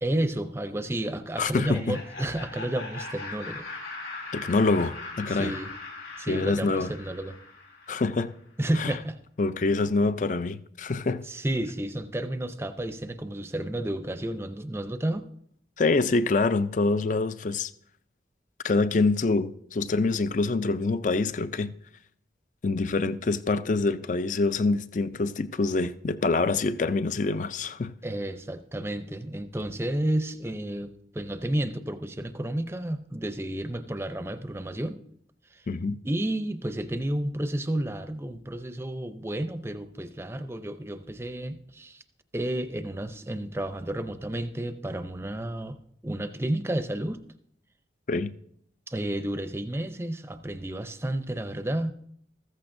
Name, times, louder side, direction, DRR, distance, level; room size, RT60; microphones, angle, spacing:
voice 1, 0.0-3.7 5.3-5.7 6.2-7.4 8.6-9.2 11.3-15.3 28.0-35.0 35.5-35.7 36.0-42.0 42.3-45.8 46.0-47.2 48.9-51.9, right 1 dB, 15° right, 0.5 m, -31 dB
voice 2, 1.4-2.0 4.3-5.5 6.3-6.9 7.9-8.3 8.8-8.9 9.4-11.2 15.8-17.7 18.6-21.7 22.6-27.9 35.7-36.0 48.1-48.3, left 3 dB, 45° left, 0.4 m, -25 dB
Laughter, 1.5-8.3, left 3 dB, 70° left, 3.9 m, -40 dB
14.5 x 14.5 x 2.6 m
head